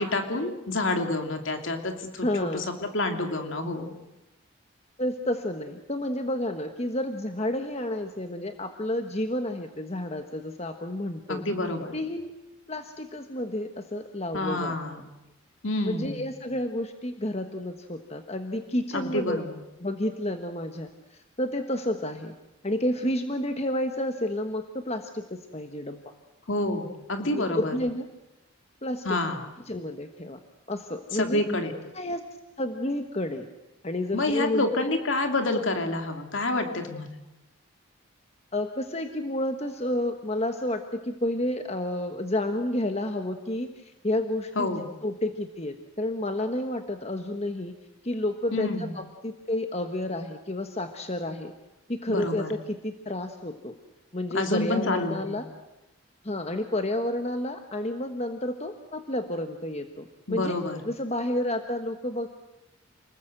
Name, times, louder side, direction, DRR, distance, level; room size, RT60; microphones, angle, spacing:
voice 1, 0.0-2.3 2.5-2.6 2.9-3.9 11.3-11.9 14.3-15.0 15.6-16.2 18.9-19.6 26.5-27.7 29.0-29.5 31.1-31.7 34.1-37.2 44.6-44.8 48.5-48.9 52.1-52.5 54.3-55.4 60.3-60.8, left 2 dB, 65° left, 5 dB, 2.7 m, -28 dB
voice 2, 2.2-2.7 5.0-11.4 11.9-12.3 12.7-15.1 15.8-19.4 19.8-22.3 22.6-26.0 27.3-28.1 28.8-29.2 29.7-30.4 30.7-31.4 31.9-32.2 32.6-33.5 33.8-34.7 38.5-44.7 45.0-47.8 48.0-51.5 51.9-53.8 54.1-55.5 56.2-60.6 60.8-62.3, left 1 dB, 30° left, 6 dB, 1.3 m, -30 dB
29.0 x 20.5 x 7.9 m, 0.97 s
head